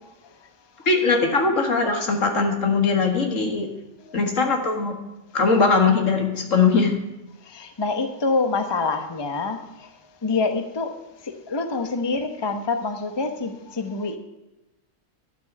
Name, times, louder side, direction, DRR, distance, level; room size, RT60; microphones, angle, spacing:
voice 1, 0.9-3.7 4.1-4.9 5.3-7.0, left 4 dB, 75° left, 3 dB, 2.2 m, -20 dB
voice 2, 7.5-9.9 10.2-10.9 11.2-14.2, left 3 dB, 20° left, 7 dB, 0.9 m, -26 dB
12.0 x 6.1 x 8.7 m, 1.0 s
omnidirectional pair, 1.3 m